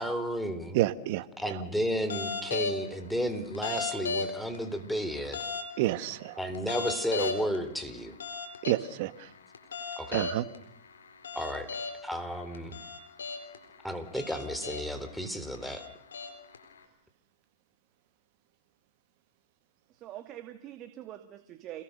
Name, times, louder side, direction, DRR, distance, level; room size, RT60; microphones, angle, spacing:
voice 1, 0.0-0.8 1.4-5.4 6.4-8.1 10.0-10.2 11.4-11.7 12.0-12.8 13.8-15.8, equal, ahead, 8 dB, 3.8 m, -33 dB
voice 2, 0.7-1.6 5.8-6.4 8.6-9.3 10.1-10.4, right 16 dB, 50° right, 14 dB, 1.7 m, -29 dB
sound 1, 2.1-2.8 3.5-4.6 5.3-5.7 6.5-7.6 8.2-8.8 9.5-10.6 11.2-12.0 12.5-13.6 14.1-15.0 15.5-16.6, left 4 dB, 80° left, 4.4 m, -35 dB
voice 3, 19.9-21.8, right 12 dB, 35° right, 8 dB, 2.2 m, -44 dB
29.0 x 20.5 x 6.8 m, 0.77 s
hypercardioid pair, 115°, 0 cm